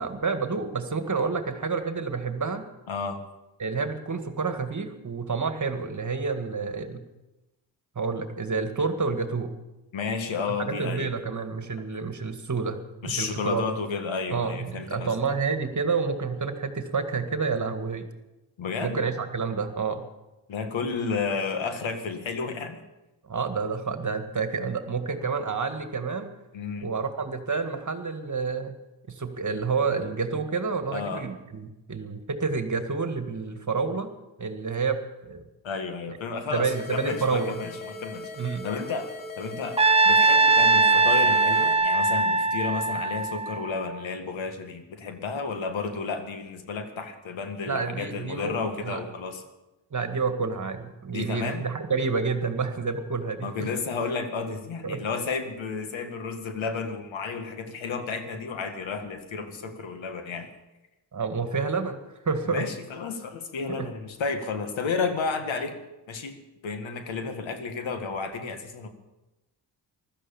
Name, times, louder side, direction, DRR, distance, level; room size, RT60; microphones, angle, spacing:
voice 1, 0.0-2.6 3.6-7.0 8.0-9.6 10.5-13.6 14.3-18.1 18.8-20.1 23.2-26.3 26.8-28.7 29.1-34.1 34.4-35.4 36.5-37.6 38.4-38.7 47.6-48.5 48.8-49.0 49.9-53.7 54.8-55.0 61.1-62.0 62.3-62.7 63.8-63.9, right 4 dB, 40° right, 8 dB, 2.0 m, -29 dB
voice 2, 2.9-3.2 9.9-11.1 13.0-15.2 18.6-19.0 20.5-22.8 26.5-26.9 30.9-31.3 35.6-49.4 51.1-51.6 53.4-60.5 62.4-65.8 66.1-68.9, left 5 dB, 75° left, 7 dB, 2.0 m, -32 dB
sound 1, 36.6-41.7, left 2 dB, 90° left, 2.7 m, -39 dB
Trumpet, 39.8-44.0, right 3 dB, 15° right, 0.6 m, -21 dB
15.5 x 12.5 x 7.1 m, 1.0 s
cardioid pair, 60°, 47 cm